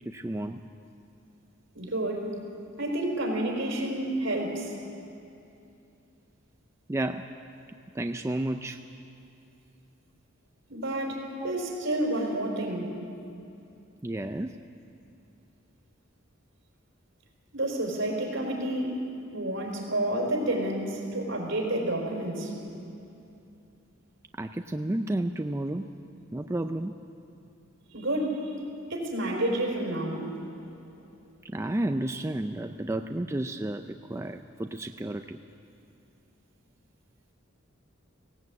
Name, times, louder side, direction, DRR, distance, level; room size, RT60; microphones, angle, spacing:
voice 1, 0.1-0.7 6.9-7.3 7.9-8.8 11.4-11.5 14.0-14.6 24.4-25.9 26.3-26.9 31.4-35.4, right 1 dB, 15° right, 6 dB, 0.4 m, -31 dB
voice 2, 1.7-2.3 2.8-4.7 10.7-12.9 17.5-19.0 19.3-22.5 27.9-28.6 28.9-30.3, right 1 dB, 65° right, -1 dB, 4.6 m, -30 dB
18.0 x 17.5 x 8.4 m, 2.7 s
head